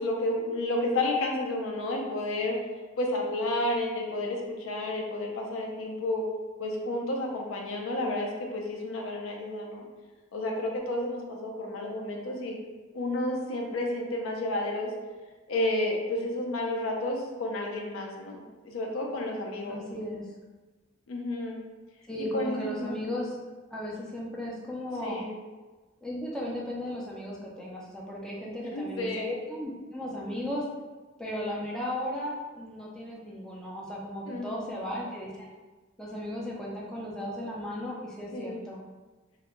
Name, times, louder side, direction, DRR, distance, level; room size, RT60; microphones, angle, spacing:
voice 1, 0.0-2.6 3.0-6.2 6.6-9.9 10.3-12.6 12.9-14.9 15.5-20.0 21.1-21.6 22.2-23.0 25.0-25.4 28.6-29.3 34.3-34.7 38.3-38.6, left 1 dB, 80° left, 0 dB, 0.5 m, -31 dB
voice 2, 19.7-20.2 22.1-23.4 23.7-25.2 26.0-30.6 31.2-35.3 36.0-38.8, left 1 dB, 5° left, -4 dB, 0.3 m, -35 dB
2.3 x 2.1 x 2.9 m, 1.2 s
head